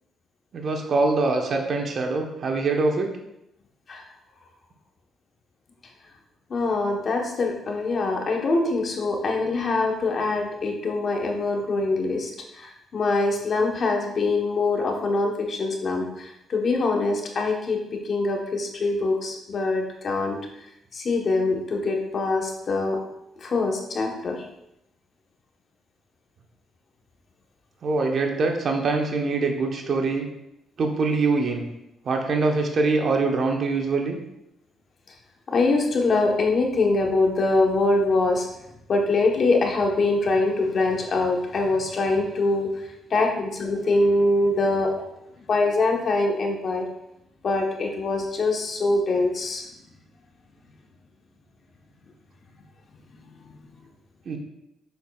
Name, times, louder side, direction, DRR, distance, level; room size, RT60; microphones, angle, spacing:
voice 1, 0.5-3.1 27.8-30.2 30.8-31.7 32.0-34.2 54.3-54.4, right 3 dB, 55° right, 2 dB, 1.1 m, -23 dB
voice 2, 6.5-12.3 12.6-20.4 20.9-23.0 23.4-24.4 35.5-38.5 38.9-42.7 43.1-44.9 45.5-46.9 47.4-49.7, left 3 dB, 50° left, 1 dB, 1.1 m, -23 dB
6.9 x 6.0 x 2.4 m, 0.84 s
cardioid pair, 90°, 0 cm